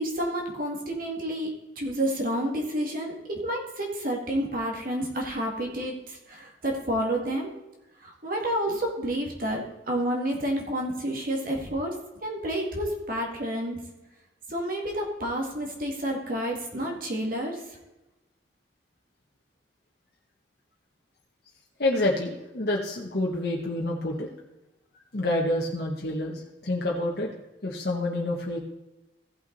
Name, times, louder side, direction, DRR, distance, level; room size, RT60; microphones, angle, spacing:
voice 1, 0.0-7.5 8.0-11.9 12.2-13.8 14.5-17.8, right 1 dB, 50° right, 0 dB, 2.2 m, -30 dB
voice 2, 21.8-24.3 25.1-27.3 27.6-28.6, left 1 dB, 55° left, -2 dB, 1.2 m, -28 dB
15.5 x 6.0 x 4.0 m, 1.0 s
head